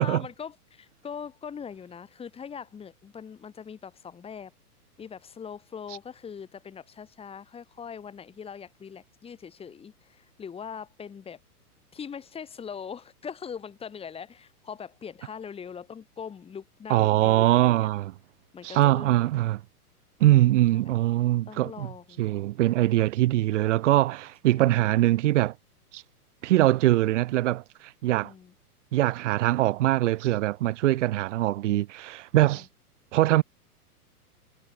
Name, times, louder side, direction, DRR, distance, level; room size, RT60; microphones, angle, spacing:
voice 1, 0.0-4.5 5.0-11.4 11.9-17.9 18.5-19.3 20.2-20.9 21.5-22.2 24.5-24.9 28.1-28.5 32.4-32.6, left 7 dB, 10° left, 7.5 m, -41 dB
voice 2, 16.9-18.1 18.6-19.6 20.2-21.9 22.2-25.5 25.9-26.0 26.4-28.3 28.9-32.7 33.1-33.4, right 15 dB, 50° right, 1.6 m, -22 dB
hypercardioid pair, 155°, 46 cm